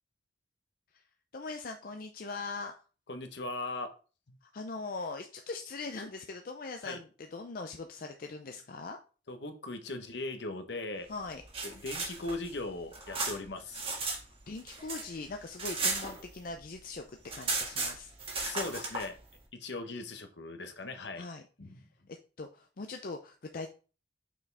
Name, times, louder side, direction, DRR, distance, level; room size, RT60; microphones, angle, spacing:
voice 1, 1.3-2.7 4.4-9.0 11.1-11.4 14.5-18.5 21.2-21.4 21.7-23.7, left 3 dB, 50° left, 5 dB, 0.5 m, -41 dB
voice 2, 3.1-3.9 6.8-7.0 9.3-11.1 11.6-13.9 18.4-19.2 19.6-21.3 21.6-21.8, left 2 dB, 70° left, 6 dB, 1.0 m, -39 dB
sound 1, 11.3-14.2 14.5-16.6 16.9-17.0 17.2-19.1, right 3 dB, 30° right, 1.6 m, -35 dB
6.1 x 4.8 x 3.3 m, 0.36 s
head